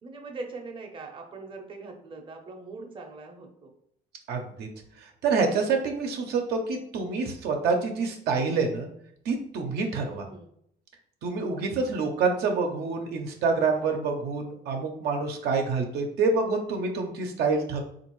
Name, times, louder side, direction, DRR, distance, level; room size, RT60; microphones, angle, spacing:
voice 1, 0.0-3.7 10.0-10.5, right 3 dB, 30° right, 2 dB, 0.7 m, -41 dB
voice 2, 4.3-4.7 5.0-8.9 9.2-10.3 11.2-17.8, right 4 dB, 70° right, 2 dB, 0.6 m, -27 dB
3.5 x 2.5 x 3.0 m, 0.69 s
cardioid pair, 110°, 17 cm